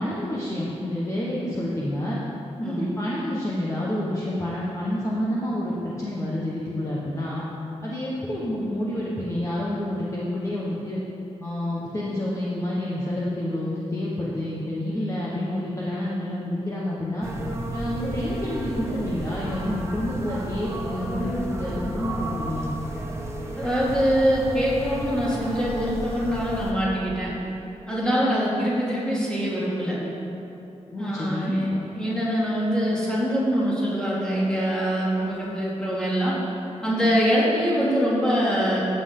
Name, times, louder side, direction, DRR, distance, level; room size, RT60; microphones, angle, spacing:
voice 1, 0.0-2.2 2.6-7.4 7.8-11.0 11.4-17.3 17.7-22.7 30.9-31.6, left 1 dB, 25° left, -6 dB, 1.2 m, -28 dB
sound 1, 17.2-26.7, right 1 dB, 25° right, 1.1 m, -33 dB
voice 2, 23.6-27.3 27.9-30.0 31.0-36.3 36.8-38.8, equal, 5° left, -8 dB, 2.7 m, -24 dB
14.5 x 7.8 x 3.8 m, 2.9 s
wide cardioid pair, 150°, 12 cm